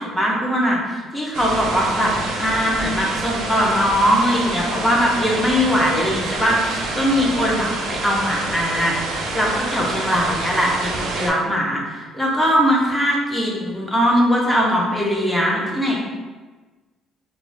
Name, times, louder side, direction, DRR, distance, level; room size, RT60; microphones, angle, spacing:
voice 1, 0.0-2.1 2.4-16.0, equal, 5° left, -3 dB, 0.5 m, -20 dB
sound 1, 1.3-11.3, right 2 dB, 80° right, 0.4 m, -27 dB
2.4 x 2.0 x 3.8 m, 1.3 s
cardioid pair, 170°, 0 cm